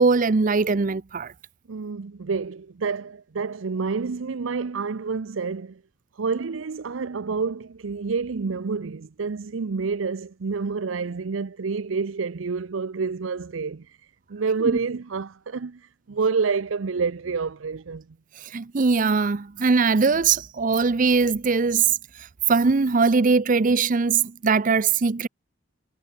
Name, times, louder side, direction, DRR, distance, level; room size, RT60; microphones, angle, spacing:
voice 1, 0.0-1.3 14.6-14.8 18.5-22.0 22.5-25.3, right 4 dB, 40° right, 0.6 m, -21 dB
voice 2, 1.7-5.7 6.2-13.8 14.3-15.8 16.1-18.0, right 5 dB, 85° right, 0.6 m, -28 dB
head